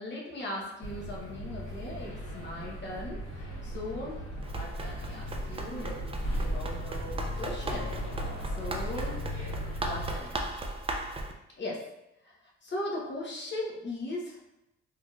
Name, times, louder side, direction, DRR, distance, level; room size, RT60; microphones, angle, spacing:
voice 1, 0.0-4.2 4.5-9.2 9.8-10.4 11.6-11.8 12.2-14.4, left 1 dB, 35° left, -3 dB, 1.0 m, -39 dB
sound 1, 0.8-10.1, equal, 70° left, 1.3 m, -37 dB
Run, 4.4-11.3, right 2 dB, 20° right, 0.3 m, -37 dB
3.4 x 2.8 x 2.4 m, 0.88 s
cardioid pair, 90°, 30 cm